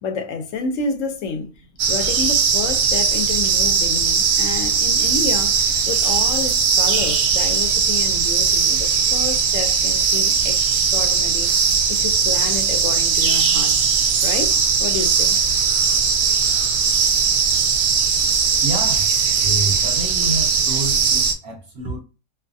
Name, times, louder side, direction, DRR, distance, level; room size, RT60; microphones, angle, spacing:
voice 1, 0.0-1.5 1.9-11.5 11.9-13.8 14.2-15.4, left 4 dB, 70° left, 0.9 m, -29 dB
sound 1, 1.8-21.3, right 6 dB, 80° right, 1.0 m, -19 dB
voice 2, 18.6-19.1 19.4-22.0, right 2 dB, 60° right, 0.7 m, -28 dB
2.6 x 2.2 x 2.5 m
omnidirectional pair, 1.5 m